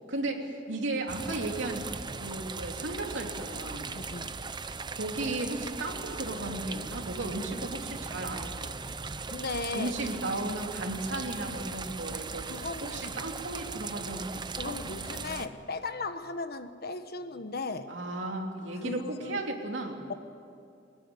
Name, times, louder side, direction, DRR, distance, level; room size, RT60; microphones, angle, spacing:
voice 1, 0.1-1.9 2.1-4.0 4.9-8.8 9.7-14.8 17.9-20.0, right 2 dB, 70° right, 2 dB, 3.0 m, -35 dB
sound 1, 1.1-15.5, right 4 dB, 25° right, 0.7 m, -39 dB
voice 2, 3.9-4.4 9.3-9.9 12.5-13.2 14.6-17.9 18.8-19.4, left 3 dB, 55° left, 10 dB, 1.2 m, -37 dB
22.0 x 19.5 x 9.7 m, 2.6 s
head